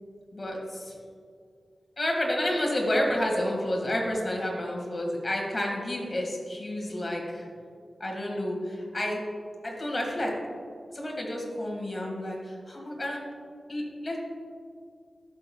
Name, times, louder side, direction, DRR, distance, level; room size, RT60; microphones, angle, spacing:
voice 1, 0.3-0.9 2.0-7.5 8.0-9.2 9.6-10.3 10.9-13.2 13.7-14.2, left 1 dB, 30° left, -1 dB, 1.8 m, -30 dB
12.5 x 6.2 x 2.3 m, 2.3 s
wide cardioid pair, 95°, 0 cm